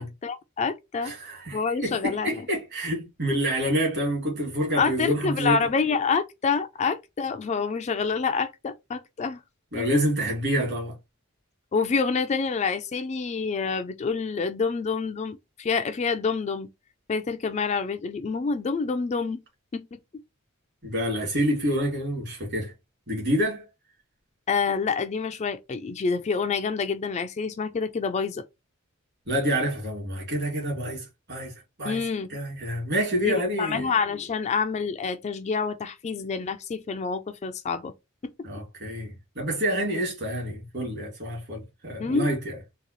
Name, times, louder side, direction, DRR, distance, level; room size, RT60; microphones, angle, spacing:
voice 1, 0.0-1.1 1.5-2.4 4.8-9.4 9.8-9.9 11.7-16.7 17.1-19.4 19.7-20.0 24.5-28.4 31.8-32.3 33.2-37.9 38.2-38.3 42.0-42.3, left 5 dB, 30° left, 0.3 m, -27 dB
voice 2, 1.0-5.6 9.7-10.9 20.8-22.7 23.1-23.7 29.3-31.5 31.8-32.0 32.3-33.9 38.4-42.5, equal, 55° right, 2.3 m, -27 dB
4.0 x 2.3 x 3.0 m
head